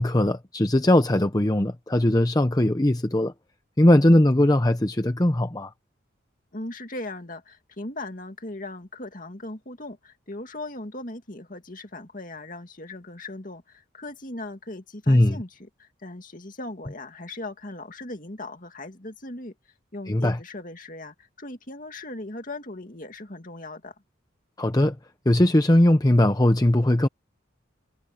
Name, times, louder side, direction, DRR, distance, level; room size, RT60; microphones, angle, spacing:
voice 1, 0.0-3.3 3.8-5.7 15.1-15.4 20.1-20.4 24.6-24.9 25.3-27.1, left 1 dB, 20° left, 0.7 m, -19 dB
voice 2, 6.5-19.5 19.9-23.9, left 2 dB, 40° left, 2.4 m, -38 dB
head